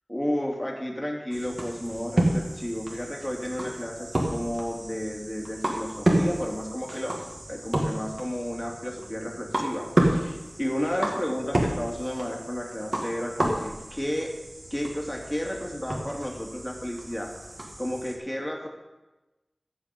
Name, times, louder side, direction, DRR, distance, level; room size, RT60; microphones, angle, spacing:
voice 1, 0.1-7.2 7.5-14.3 14.7-17.3 17.8-18.7, equal, 15° left, -1 dB, 2.6 m, -32 dB
wall tennis, 1.3-18.2, right 1 dB, 50° right, 2.2 m, -30 dB
15.0 x 5.1 x 8.4 m, 1.1 s
wide cardioid pair, 50°, 0 cm